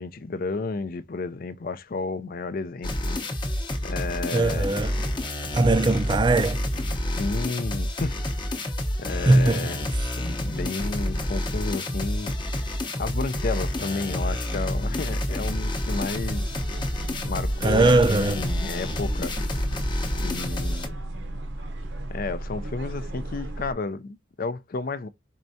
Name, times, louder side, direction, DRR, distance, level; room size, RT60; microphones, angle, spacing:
voice 1, 0.0-3.2 3.8-4.8 7.2-8.7 9.0-12.7 13.0-16.5 17.2-19.4 20.2-21.0 22.1-25.1, left 3 dB, 50° left, 0.5 m, -32 dB
sound 1, 2.8-20.9, left 1 dB, 25° left, 0.8 m, -28 dB
voice 2, 4.3-5.1 5.5-6.6 9.2-9.7 17.6-18.4, right 2 dB, 25° right, 0.4 m, -20 dB
sound 2, 15.9-23.7, right 1 dB, 65° right, 0.8 m, -35 dB
4.5 x 4.4 x 2.7 m
head